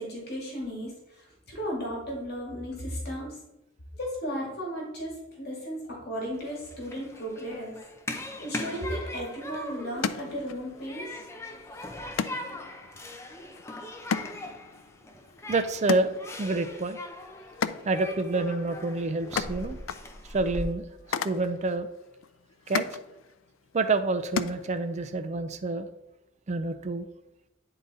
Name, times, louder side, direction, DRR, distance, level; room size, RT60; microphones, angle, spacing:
voice 1, 0.0-3.4 4.0-7.8 8.4-11.2, equal, 55° left, -3 dB, 2.0 m, -35 dB
Human group actions, 6.3-20.6, left 1 dB, 15° left, 0.6 m, -40 dB
sound 1, 9.1-25.2, left 6 dB, 80° left, 0.4 m, -37 dB
voice 2, 15.5-16.1 16.4-17.0 17.9-19.8 20.3-20.9 21.2-21.9 22.7-22.9 23.7-25.9 26.5-27.1, right 3 dB, 35° right, 9 dB, 0.4 m, -28 dB
9.5 x 3.9 x 4.0 m, 0.90 s
head